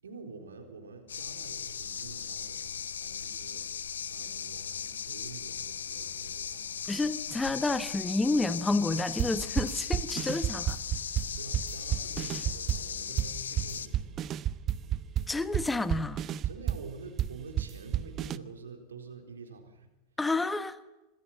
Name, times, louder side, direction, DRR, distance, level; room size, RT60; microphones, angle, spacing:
voice 1, 0.0-6.9 11.3-14.3 16.4-19.9, right 4 dB, 70° right, 4.2 m, -47 dB
sound 1, 1.1-13.9, left 7 dB, 70° left, 1.0 m, -38 dB
voice 2, 6.9-10.8 15.3-16.2 20.2-20.8, left 2 dB, 10° left, 1.2 m, -29 dB
sound 2, 9.2-18.4, right 11 dB, 30° right, 0.9 m, -31 dB
26.0 x 20.0 x 7.4 m
figure-of-eight pair, 90°, 0 cm